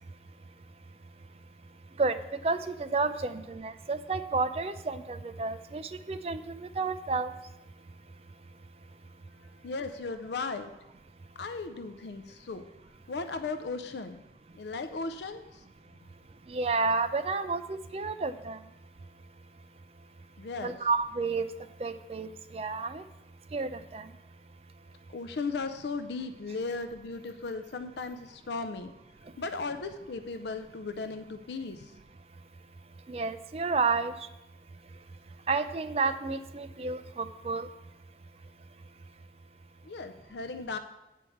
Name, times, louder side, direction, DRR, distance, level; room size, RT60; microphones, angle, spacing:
voice 1, 2.4-5.8 6.1-7.3 16.5-18.6 20.6-21.5 21.8-23.0 23.5-24.1 33.1-34.1 35.5-37.7, right 4 dB, 35° right, 11 dB, 0.4 m, -30 dB
voice 2, 9.6-10.7 11.4-12.6 13.1-14.2 14.5-15.6 17.2-17.4 20.4-20.8 25.1-28.9 29.4-31.9 39.8-40.8, left 4 dB, 70° left, 10 dB, 0.5 m, -36 dB
8.3 x 4.6 x 7.0 m, 0.94 s
head